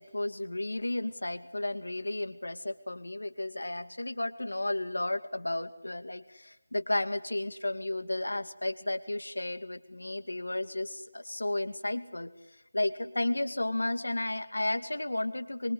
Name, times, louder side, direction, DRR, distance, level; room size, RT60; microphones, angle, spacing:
voice 1, 0.0-12.3 12.7-15.7, left 1 dB, 85° left, 10 dB, 2.4 m, -33 dB
25.0 x 24.5 x 8.5 m, 0.92 s
figure-of-eight pair, 165°, 0 cm